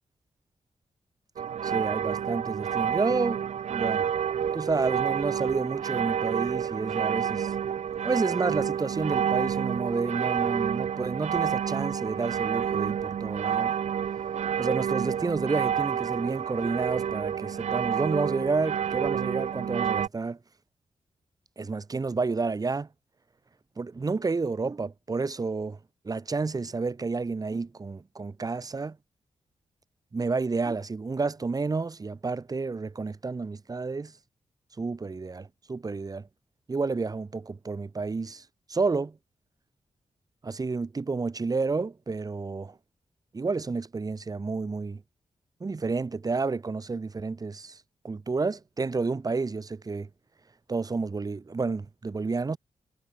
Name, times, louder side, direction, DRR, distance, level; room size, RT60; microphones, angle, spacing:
sound 1, 1.4-20.1, right 8 dB, 75° right, 0.9 m, -29 dB
voice 1, 1.6-3.4 3.7-4.1 4.5-7.5 8.0-13.7 14.6-20.4 21.6-22.9 23.8-25.8 26.0-29.0 30.1-34.1 34.8-36.3 36.7-39.2 40.4-42.8 43.3-45.0 45.6-50.1 50.7-52.6, right 4 dB, 35° right, 2.3 m, -30 dB
wide cardioid pair, 125°, 12 cm